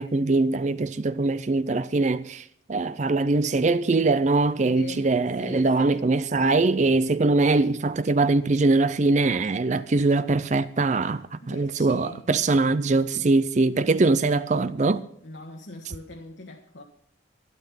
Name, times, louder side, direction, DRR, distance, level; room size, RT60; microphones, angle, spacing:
voice 1, 0.0-15.0, right 3 dB, 35° right, 0.5 m, -22 dB
voice 2, 4.6-5.1 5.4-6.1 11.4-12.2 15.2-16.8, left 2 dB, 65° left, 1.6 m, -41 dB
12.5 x 12.0 x 5.7 m
head